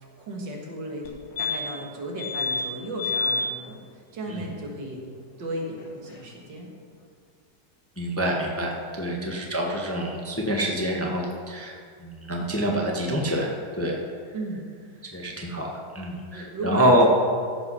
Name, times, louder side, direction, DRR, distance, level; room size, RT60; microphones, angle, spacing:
voice 1, 0.2-1.1 1.4-5.0 5.4-6.7 9.1-9.4 14.3-14.7 16.3-17.1, right 1 dB, 80° right, 0 dB, 2.3 m, -35 dB
sound 1, 1.0-1.1 1.4-1.8 2.2-2.6 3.0-3.4 5.8-5.9 6.1-6.2, left 4 dB, 85° left, 2.2 m, -27 dB
voice 2, 8.0-14.0 15.1-15.7 15.9-17.1, equal, 10° left, -1 dB, 1.0 m, -26 dB
14.5 x 5.6 x 5.6 m, 2.1 s
omnidirectional pair, 1.9 m